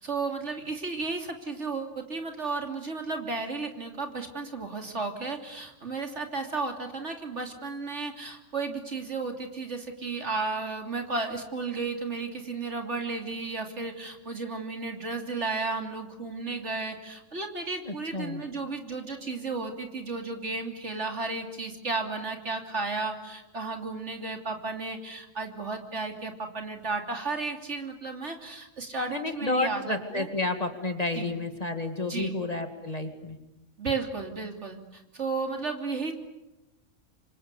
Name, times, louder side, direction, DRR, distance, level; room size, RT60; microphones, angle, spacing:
voice 1, 0.0-30.3 31.1-31.3 32.1-32.3 33.8-36.1, right 3 dB, 60° right, 4 dB, 3.3 m, -33 dB
voice 2, 17.8-18.4 29.1-33.4, left 2 dB, 30° left, 6 dB, 2.3 m, -31 dB
28.0 x 25.0 x 8.3 m, 0.96 s
omnidirectional pair, 1.3 m